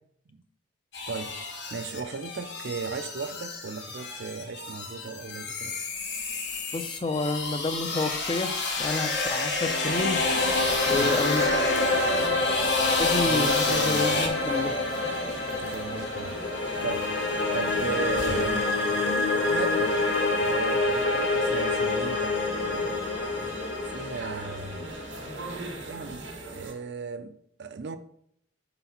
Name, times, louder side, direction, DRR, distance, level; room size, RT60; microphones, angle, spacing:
sound 1, 0.9-14.3, left 3 dB, 65° left, 0.9 m, -31 dB
voice 1, 1.1-1.4 1.7-5.8 10.9-11.1 13.2-14.4 15.5-16.4 16.8-17.1 17.5-18.7 19.4-20.1 20.4-23.1 23.8-24.8 25.9-26.2 26.5-28.0, right 4 dB, 65° right, 0.5 m, -36 dB
voice 2, 6.7-10.2 10.9-11.6 13.0-14.7, left 3 dB, 25° left, 0.4 m, -29 dB
sound 2, 8.9-26.0, left 2 dB, 80° left, 1.2 m, -27 dB
sound 3, 9.8-26.7, right 2 dB, 85° right, 1.4 m, -39 dB
5.0 x 4.0 x 5.6 m
head